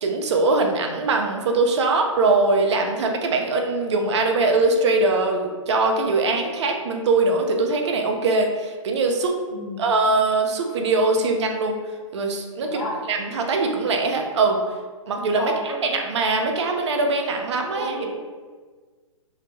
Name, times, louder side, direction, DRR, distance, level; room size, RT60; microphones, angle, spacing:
voice 1, 0.0-9.3 9.8-11.8 12.1-14.6 15.1-18.0, right 3 dB, 60° right, 3 dB, 0.5 m, -22 dB
voice 2, 12.6-13.0 15.4-15.9 17.7-18.0, left 1 dB, 65° left, -4 dB, 1.0 m, -30 dB
2.8 x 2.1 x 3.0 m, 1.4 s
hypercardioid pair, 130°, 17 cm